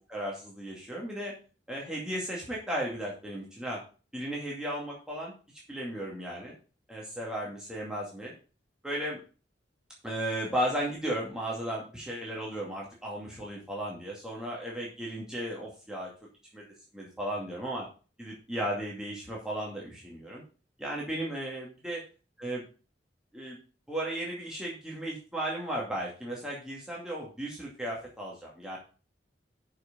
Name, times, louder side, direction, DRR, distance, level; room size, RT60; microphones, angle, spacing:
voice 1, 0.1-1.3 1.7-3.8 4.1-5.3 5.7-6.5 6.9-8.3 8.8-9.2 10.0-16.1 16.5-16.6 16.9-17.8 18.2-20.4 20.8-22.0 22.4-22.6 23.3-23.6 23.9-28.8, right 1 dB, 5° right, -4 dB, 2.2 m, -35 dB
6.5 x 6.1 x 6.7 m, 0.36 s
head